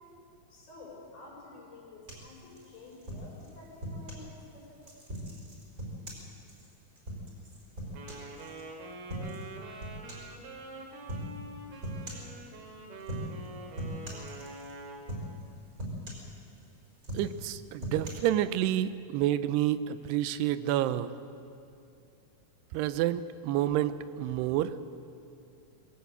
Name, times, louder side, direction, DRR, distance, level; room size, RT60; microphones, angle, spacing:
voice 1, 0.5-5.0, left 2 dB, 70° left, -2 dB, 6.7 m, -50 dB
sound 1, 2.1-4.3 4.8-8.6 9.1-9.5 9.8-10.4 11.1-11.3 11.8-12.3 13.0-13.5 13.8-14.7 15.1-15.5 15.8-16.6 17.0-18.1, equal, 20° right, 5.0 m, -40 dB
Wind instrument woodwind instrument, 7.9-15.1, right 3 dB, 70° right, 4.0 m, -45 dB
voice 2, 17.1-21.1 22.7-24.8, right 12 dB, 90° right, 14 dB, 2.8 m, -29 dB
21.0 x 16.5 x 8.1 m, 2.6 s
omnidirectional pair, 4.6 m